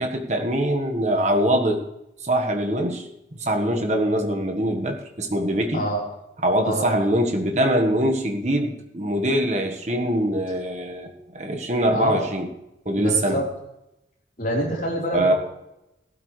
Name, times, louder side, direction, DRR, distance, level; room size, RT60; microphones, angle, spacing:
voice 1, 0.0-1.8 2.2-3.1 3.4-5.9 6.4-11.1 11.3-12.5 12.8-13.4 15.1-15.3, right 1 dB, 40° right, 3 dB, 1.4 m, -23 dB
voice 2, 6.6-7.0 11.9-12.2 12.9-13.4 14.4-15.3, right 1 dB, 45° left, -3 dB, 4.1 m, -26 dB
15.5 x 12.5 x 3.3 m, 0.88 s
head